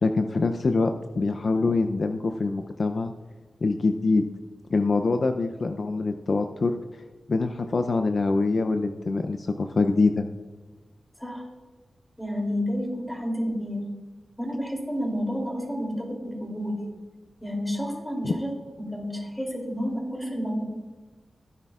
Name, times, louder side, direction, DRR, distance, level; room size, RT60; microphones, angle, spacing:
voice 1, 0.0-3.1 3.6-4.2 4.7-7.0 7.3-10.3 18.2-18.3, left 3 dB, 55° left, 7 dB, 0.5 m, -24 dB
voice 2, 12.2-13.8 14.4-16.8 17.4-18.5 18.8-20.6, equal, 5° left, 0 dB, 2.9 m, -30 dB
15.5 x 10.0 x 2.4 m, 1.3 s
wide cardioid pair, 105°, 0 cm